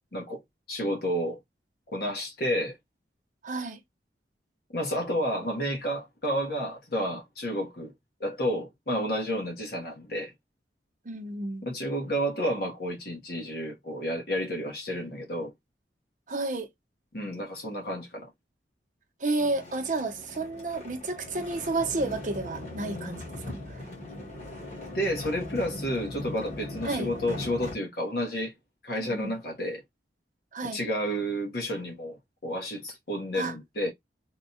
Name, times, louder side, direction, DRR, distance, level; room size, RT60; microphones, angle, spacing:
voice 1, 0.1-0.4 0.7-1.4 1.9-2.8 4.7-7.9 8.2-10.3 11.6-15.5 17.1-18.3 24.9-28.5 28.8-29.8 30.7-33.9, equal, 60° left, 1.1 m, -31 dB
voice 2, 3.4-3.8 11.0-11.7 16.3-16.7 19.2-23.3 26.8-27.1 29.0-29.3 30.5-30.8 33.3-33.5, right 2 dB, 45° right, 0.7 m, -31 dB
sound 1, 19.4-27.7, left 1 dB, 40° left, 1.3 m, -39 dB
3.5 x 2.2 x 2.7 m
head